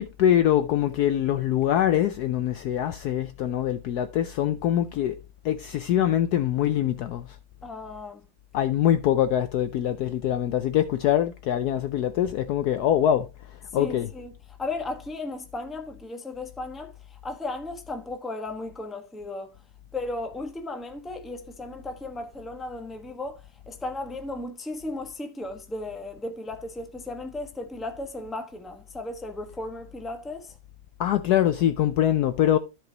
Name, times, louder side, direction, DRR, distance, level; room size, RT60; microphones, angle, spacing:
voice 1, 0.0-5.2 5.4-7.4 8.5-14.1 31.0-32.6, left 11 dB, 70° left, 0.9 m, -24 dB
voice 2, 7.6-8.3 13.7-14.3 14.6-19.5 19.9-30.6, left 2 dB, ahead, 0.8 m, -35 dB
14.0 x 5.1 x 2.9 m
omnidirectional pair, 2.0 m